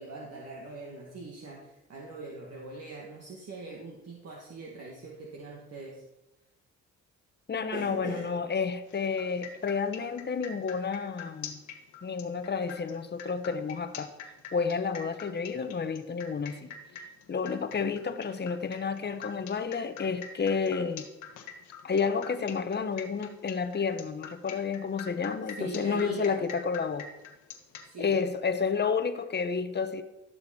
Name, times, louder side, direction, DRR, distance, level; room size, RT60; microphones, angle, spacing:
voice 1, 0.0-6.0 7.7-8.3 10.0-10.1 25.6-26.4 27.8-28.2, right 3 dB, 55° right, 1.8 m, -42 dB
voice 2, 7.5-11.6 12.0-14.1 14.5-16.7 17.3-21.1 21.8-27.1 28.0-30.0, left 5 dB, 35° left, 1.1 m, -30 dB
sound 1, 8.9-27.9, left 7 dB, 85° left, 1.6 m, -45 dB
15.5 x 6.4 x 4.3 m
cardioid pair, 90°, 30 cm